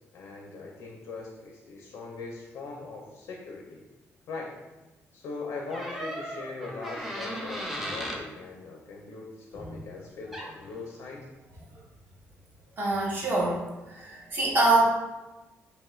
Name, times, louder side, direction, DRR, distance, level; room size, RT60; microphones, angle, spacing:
voice 1, 0.1-3.8 4.3-4.5 5.1-11.3, left 3 dB, 70° left, -1 dB, 0.4 m, -40 dB
sound 1, 5.7-8.2 10.3-10.5, equal, 5° right, 0.4 m, -36 dB
voice 2, 12.8-13.6 13.9-14.8, right 2 dB, 45° right, -4 dB, 0.8 m, -25 dB
2.8 x 2.3 x 3.0 m, 1.1 s
cardioid pair, 160°, 5 cm